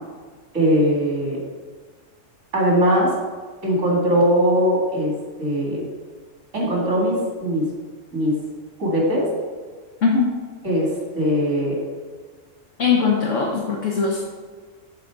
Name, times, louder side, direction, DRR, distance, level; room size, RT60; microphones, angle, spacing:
voice 1, 0.5-1.4 2.5-3.1 3.6-5.1 5.4-5.8 6.5-7.6 8.1-8.4 8.8-9.3 10.6-10.9 11.2-11.8, equal, 75° right, -3 dB, 2.6 m, -20 dB
voice 2, 10.0-10.3 12.8-14.2, left 5 dB, 75° left, -2 dB, 1.4 m, -20 dB
11.0 x 3.9 x 4.7 m, 1.5 s
omnidirectional pair, 1.3 m